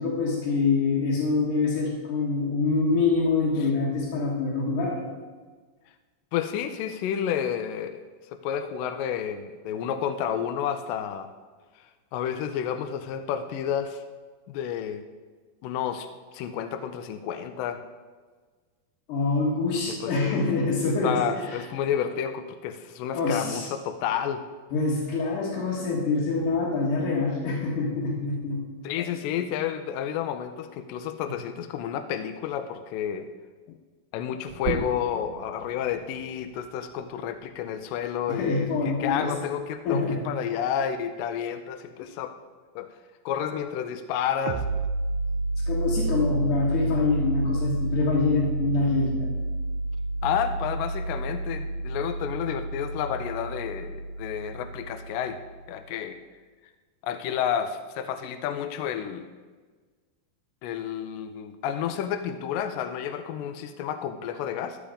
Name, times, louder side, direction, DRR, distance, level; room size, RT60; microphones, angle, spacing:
voice 1, 0.0-5.0 19.1-21.6 23.1-23.7 24.7-28.6 38.3-39.3 39.8-40.2 45.7-49.3, left 4 dB, 60° left, -5 dB, 3.1 m, -25 dB
voice 2, 6.3-8.0 8.3-11.3 12.1-14.0 14.5-15.0 15.6-16.1 16.3-17.8 19.9-20.4 20.8-24.5 28.8-33.3 33.7-33.8 34.1-42.4 42.8-42.9 43.3-44.7 50.2-55.4 55.7-56.2 57.0-59.3 60.6-64.8, left 9 dB, 80° left, 9 dB, 2.1 m, -30 dB
sound 1, 34.5-39.7, right 5 dB, 55° right, 2.2 m, -39 dB
sound 2, 44.5-55.8, right 2 dB, 80° right, 1.9 m, -30 dB
14.0 x 7.1 x 5.1 m, 1.4 s
omnidirectional pair, 4.4 m